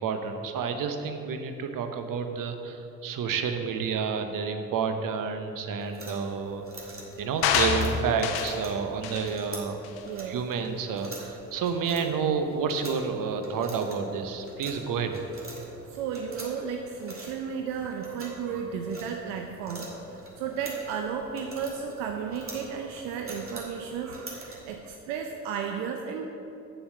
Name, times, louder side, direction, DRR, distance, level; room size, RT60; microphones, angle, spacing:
voice 1, 0.0-9.8 10.3-15.2, right 6 dB, 55° right, 7 dB, 1.0 m, -30 dB
sound 1, 5.8-24.8, right 1 dB, 35° right, 2.4 m, -45 dB
sound 2, 7.4-8.6 9.0-9.3 9.8-10.0, left 6 dB, 70° left, 0.9 m, -26 dB
voice 2, 10.1-10.4 15.9-19.9 20.4-26.3, right 7 dB, 75° right, 3 dB, 0.7 m, -34 dB
7.1 x 7.1 x 6.7 m, 2.9 s
hypercardioid pair, 50°, 39 cm